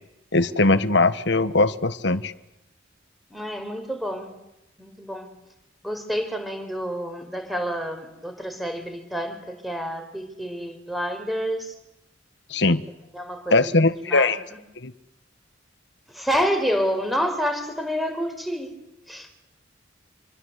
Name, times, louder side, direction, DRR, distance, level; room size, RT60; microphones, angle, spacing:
voice 1, 0.3-2.3 12.5-12.8 13.5-14.4 14.8-14.9, left 2 dB, 60° left, 12 dB, 1.3 m, -20 dB
voice 2, 3.3-4.3 4.8-5.3 5.8-11.7 13.1-14.6 16.1-18.7 19.1-19.3, equal, ahead, 6 dB, 4.6 m, -28 dB
27.0 x 24.0 x 8.2 m, 0.89 s
head